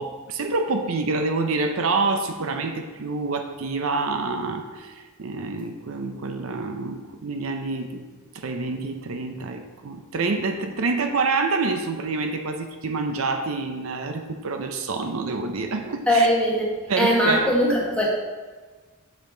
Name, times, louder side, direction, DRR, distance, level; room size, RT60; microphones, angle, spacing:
voice 1, 0.0-4.9 5.2-8.1 8.3-16.3 16.9-17.5, right 3 dB, 70° right, 6 dB, 0.6 m, -27 dB
voice 2, 16.1-16.7 17.0-18.1, equal, 5° left, -4 dB, 1.3 m, -20 dB
6.6 x 5.5 x 3.8 m, 1.3 s
head